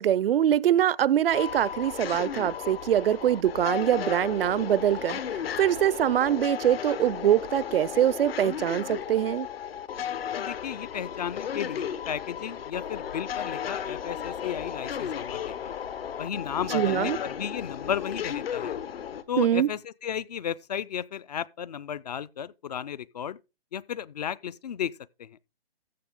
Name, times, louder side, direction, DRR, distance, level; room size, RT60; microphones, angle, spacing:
voice 1, 0.0-5.2 5.6-9.5 16.7-17.2 19.4-19.7, right 11 dB, 65° right, 0.5 m, -23 dB
sound 1, 1.3-19.2, left 8 dB, 65° left, 1.2 m, -34 dB
voice 2, 10.3-15.8 16.2-18.8 19.3-23.4 23.7-24.9 25.2-25.4, left 8 dB, 40° left, 0.4 m, -34 dB
14.5 x 5.9 x 3.6 m
hypercardioid pair, 150°, 31 cm